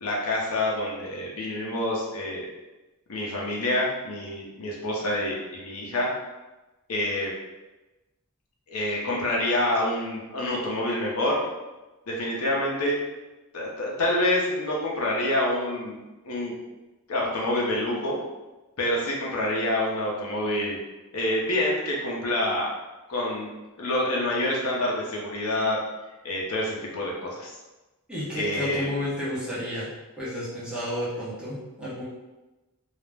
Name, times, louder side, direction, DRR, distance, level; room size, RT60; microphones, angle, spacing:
voice 1, 0.0-2.5 3.1-6.1 6.9-7.3 8.7-11.4 12.1-13.0 13.5-16.0 16.2-16.5 17.1-18.2 18.8-20.8 21.1-22.7 23.1-23.5 23.8-25.8 26.2-27.5 28.3-28.9, left 1 dB, 70° left, -3 dB, 0.6 m, -27 dB
voice 2, 28.1-29.9 30.2-32.0, left 1 dB, 5° right, -9 dB, 0.8 m, -31 dB
2.3 x 2.0 x 3.2 m, 1.1 s
head